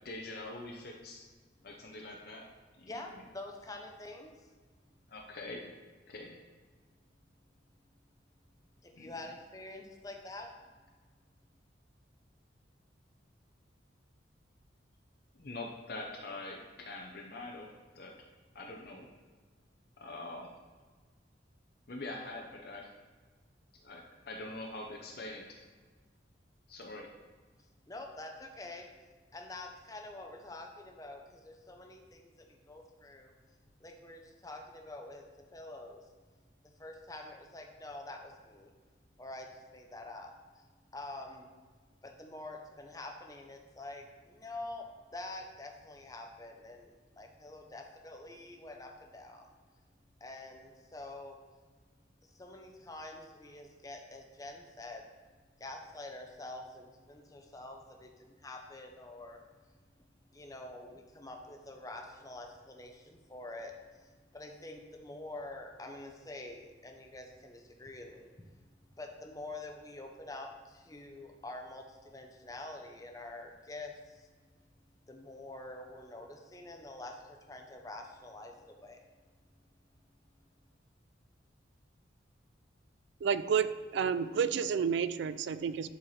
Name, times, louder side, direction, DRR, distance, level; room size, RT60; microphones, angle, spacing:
voice 1, 0.0-1.2 1.6-2.4 2.8-3.1 5.1-5.7 6.1-6.4 8.9-9.1 15.3-17.7 17.9-18.1 18.5-19.1 20.0-20.5 21.9-22.9 23.8-25.4 26.7-27.1, left 2 dB, 55° left, -1 dB, 0.7 m, -44 dB
voice 2, 2.8-4.5 8.8-10.5 27.9-28.9 29.3-33.3 33.8-36.0 36.8-38.7 39.2-40.6 40.9-41.5 42.0-49.5 50.2-51.4 52.2-55.1 55.6-59.4 60.3-68.5 69.0-74.3 75.1-79.0, left 2 dB, 20° left, 3 dB, 0.7 m, -46 dB
voice 3, 83.2-85.9, right 7 dB, 70° right, 13 dB, 0.3 m, -30 dB
11.0 x 4.4 x 3.2 m, 1.4 s
head